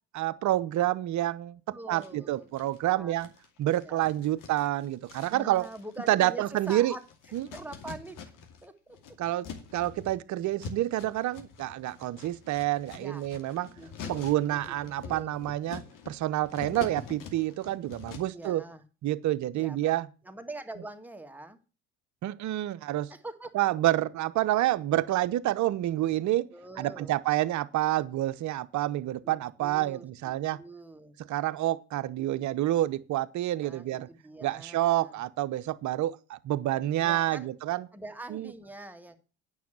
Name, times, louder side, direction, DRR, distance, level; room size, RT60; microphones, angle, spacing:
voice 1, 0.1-1.6 1.9-3.3 3.6-5.7 6.1-6.9 7.3-7.5 9.2-9.5 9.7-13.7 14.1-18.6 19.0-20.1 22.2-23.1 23.5-26.5 26.8-30.6 31.3-34.1 34.4-37.9 38.3-38.5, right 14 dB, 50° right, 0.8 m, -28 dB
voice 2, 1.7-2.5 2.9-3.2 3.8-4.4 5.3-7.0 7.5-8.2 8.6-9.0 10.3-10.5 12.9-13.3 13.7-14.8 15.0-15.4 18.3-18.8 19.5-19.9 20.2-21.6 23.1-23.7 26.5-27.1 29.2-31.2 33.6-35.2 37.0-37.5 37.9-39.2, right 2 dB, 5° right, 1.8 m, -44 dB
sound 1, 2.0-2.8 3.2-8.6 8.9-18.5, left 6 dB, 60° left, 2.4 m, -45 dB
9.4 x 6.4 x 7.4 m
hypercardioid pair, 55°, 36 cm